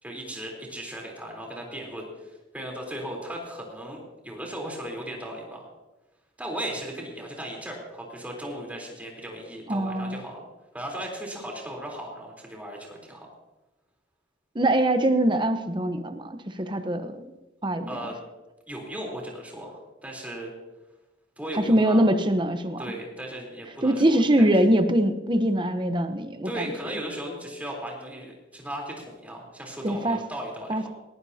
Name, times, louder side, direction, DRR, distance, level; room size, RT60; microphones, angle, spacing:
voice 1, 0.0-5.7 6.4-10.5 10.7-13.3 17.9-18.2 18.7-20.5 21.4-22.1 22.8-24.5 26.4-30.9, right 1 dB, 10° right, -1 dB, 3.8 m, -37 dB
voice 2, 9.7-10.2 14.5-17.3 17.6-18.1 21.5-22.8 23.8-26.7 29.8-30.2 30.7-30.9, right 1 dB, 25° right, 7 dB, 1.0 m, -23 dB
20.5 x 15.0 x 2.9 m, 1.1 s
head